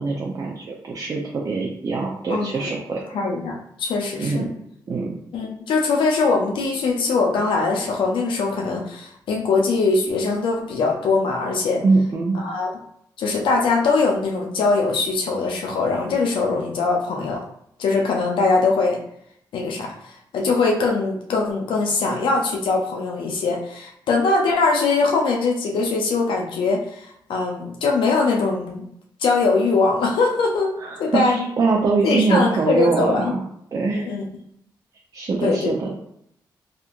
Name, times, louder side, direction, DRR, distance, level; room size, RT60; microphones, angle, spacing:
voice 1, 0.0-3.0 4.2-4.5 4.9-5.1 11.8-12.4 30.8-33.4 33.7-34.1 35.1-35.9, right 4 dB, 45° right, -2 dB, 0.5 m, -23 dB
voice 2, 2.3-2.7 3.1-4.5 5.3-11.8 12.3-12.7 13.2-17.4 17.8-19.0 19.5-28.9 29.2-30.7 31.0-31.5 32.0-33.3 33.9-34.2 35.4-35.8, left 3 dB, 85° left, 0 dB, 0.5 m, -22 dB
2.8 x 2.4 x 2.5 m, 0.71 s
cardioid pair, 75°, 8 cm